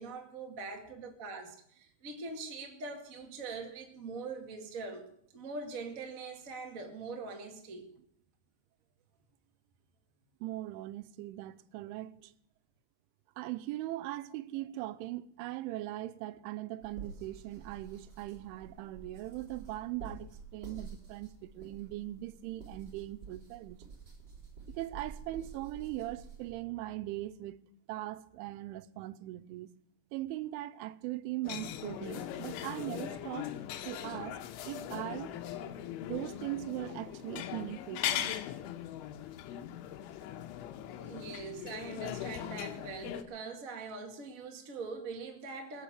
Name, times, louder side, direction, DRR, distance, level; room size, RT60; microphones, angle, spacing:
voice 1, 0.0-5.0 5.3-7.9 41.0-45.8, right 4 dB, 55° right, 0.9 m, -42 dB
voice 2, 10.4-12.3 13.4-23.8 24.7-27.6 27.9-29.7 30.1-33.5 33.9-34.4 34.7-35.4 36.1-38.4, right 16 dB, 90° right, 3.2 m, -40 dB
sound 1, 16.8-26.5, right 5 dB, 25° right, 4.1 m, -49 dB
sound 2, 31.4-43.2, left 11 dB, 90° left, 3.3 m, -40 dB
21.5 x 7.4 x 7.3 m
omnidirectional pair, 5.4 m